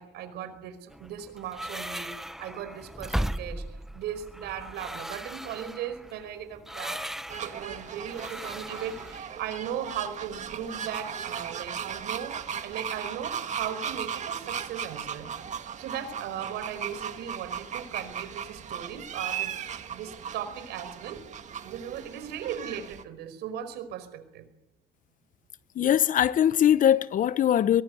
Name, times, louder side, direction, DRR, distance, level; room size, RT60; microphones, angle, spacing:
voice 1, 0.0-3.6 3.9-7.0 7.4-12.4 12.6-15.3 15.8-19.6 19.9-21.2 21.6-24.4, right 9 dB, 80° right, 5.0 m, -37 dB
sound 1, 0.9-9.2, right 1 dB, ahead, 0.9 m, -37 dB
sound 2, 7.3-23.0, right 8 dB, 45° right, 1.9 m, -37 dB
voice 2, 25.7-27.8, left 10 dB, 50° left, 1.0 m, -21 dB
23.0 x 19.5 x 9.5 m
cardioid pair, 110°, 17 cm